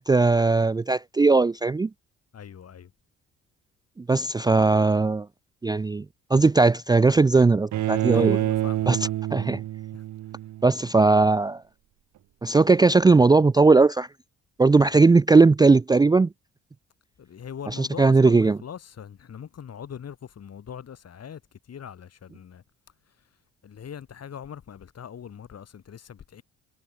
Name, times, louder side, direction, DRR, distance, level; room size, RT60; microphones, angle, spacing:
voice 1, 0.0-1.9 4.0-5.3 5.6-6.1 6.3-8.4 8.9-9.0 9.3-9.6 10.6-11.6 12.4-14.1 14.6-16.3 17.8-18.6, right 3 dB, 15° right, 0.4 m, -18 dB
voice 2, 2.3-2.9 8.1-9.1 9.9-10.0 17.2-21.4 21.7-22.6 23.1-23.2 23.6-26.4, left 8 dB, 55° left, 7.0 m, -41 dB
Bowed string instrument, 7.7-10.8, right 14 dB, 70° right, 1.1 m, -27 dB
cardioid pair, 90°, 30 cm